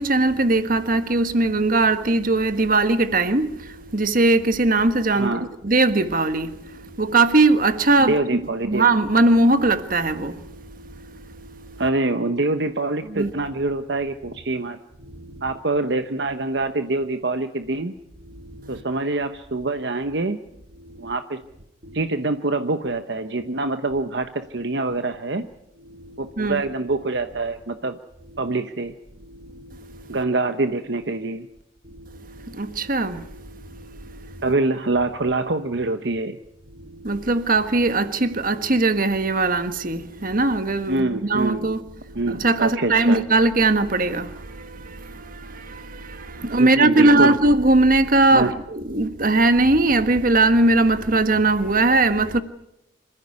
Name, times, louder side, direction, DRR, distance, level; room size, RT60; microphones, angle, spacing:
voice 1, 0.0-5.4 5.6-11.8 13.1-13.3 15.0-15.5 18.3-18.8 20.9-21.0 21.9-22.0 25.9-26.6 29.3-30.2 32.0-34.5 36.8-41.8 42.2-52.4, right 2 dB, 50° right, 1.5 m, -21 dB
voice 2, 5.2-5.5 8.0-8.9 11.8-14.8 15.4-17.9 18.7-20.4 21.0-21.4 21.9-25.5 26.2-28.0 28.4-28.9 30.1-31.5 34.4-36.4 40.9-41.8 42.1-43.2 46.4-47.4 48.3-48.5, right 2 dB, 65° right, 1.0 m, -25 dB
26.5 x 14.5 x 9.7 m
head